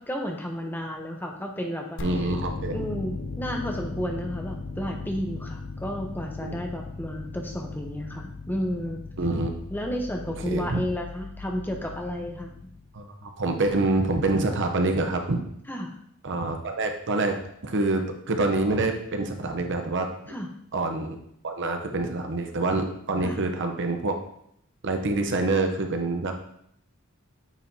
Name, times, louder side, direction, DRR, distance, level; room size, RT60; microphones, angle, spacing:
voice 1, 0.0-2.0 2.7-9.0 9.7-12.5 15.7-16.0 20.3-20.5 23.2-23.4, equal, 10° left, 2 dB, 0.8 m, -32 dB
sound 1, 2.0-13.0, left 3 dB, 60° left, 0.6 m, -37 dB
voice 2, 2.0-2.8 6.4-6.6 9.2-9.5 10.4-10.8 12.9-15.4 16.2-17.4 17.6-20.1 20.7-21.2 21.4-24.1 24.8-26.4, right 2 dB, 60° right, 5 dB, 0.8 m, -26 dB
8.9 x 4.9 x 2.8 m, 0.72 s
head